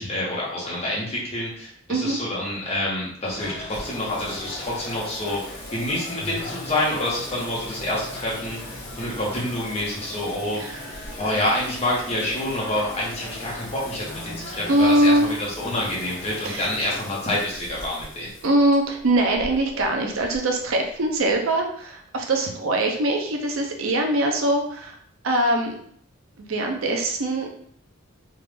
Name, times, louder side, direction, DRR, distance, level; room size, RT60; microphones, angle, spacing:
voice 1, 0.0-5.4 5.7-10.6 11.2-18.3, left 1 dB, 30° left, -5 dB, 1.1 m, -27 dB
sound 1, 3.2-17.0, left 1 dB, 50° left, 1.2 m, -39 dB
Singing, 3.7-21.3, left 1 dB, 65° left, 1.2 m, -42 dB
voice 2, 14.7-15.3 16.4-16.7 18.4-25.0 25.2-25.8 26.5-27.5, right 1 dB, 75° right, 2 dB, 0.6 m, -22 dB
3.6 x 2.4 x 3.4 m, 0.62 s
head